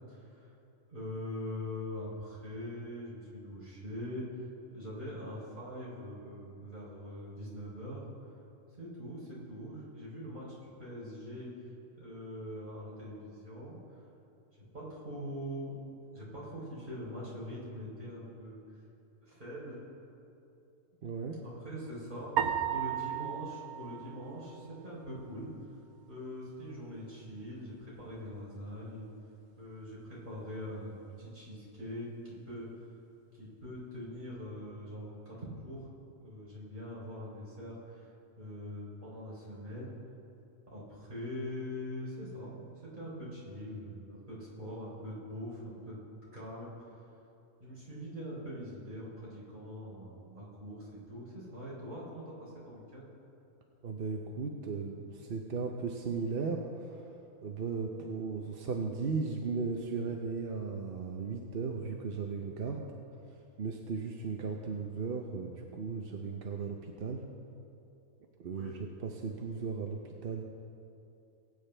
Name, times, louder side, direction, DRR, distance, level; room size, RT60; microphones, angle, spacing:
voice 1, 0.1-0.5 0.9-4.3 4.7-8.1 8.8-11.5 12.0-13.8 14.5-15.8 16.1-18.6 19.2-19.8 21.4-25.5 26.1-29.1 29.6-32.7 33.3-35.9 36.2-38.1 38.4-39.9 40.7-46.0 46.3-46.7 47.6-53.1 64.7-64.8 68.5-68.8, equal, 35° right, -7 dB, 3.7 m, -43 dB
voice 2, 21.0-21.4 53.8-57.0 57.4-62.8 63.6-67.2 68.4-68.7 69.0-70.4, right 5 dB, 50° right, 2 dB, 0.8 m, -36 dB
sound 1, 22.4-24.8, right 9 dB, 90° right, 1.2 m, -34 dB
20.5 x 9.0 x 3.3 m, 2.8 s
omnidirectional pair, 1.5 m